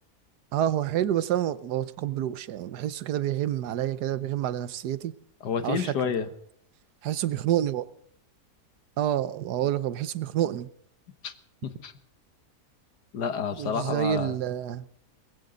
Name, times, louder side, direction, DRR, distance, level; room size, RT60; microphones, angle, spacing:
voice 1, 0.5-5.1 5.6-6.1 7.0-7.9 9.0-10.7 13.6-14.9, right 11 dB, 80° right, 1.4 m, -28 dB
voice 2, 5.4-6.3 11.2-11.3 11.6-11.9 13.1-14.3, left 6 dB, 85° left, 1.9 m, -29 dB
20.0 x 16.0 x 3.9 m
omnidirectional pair, 1.7 m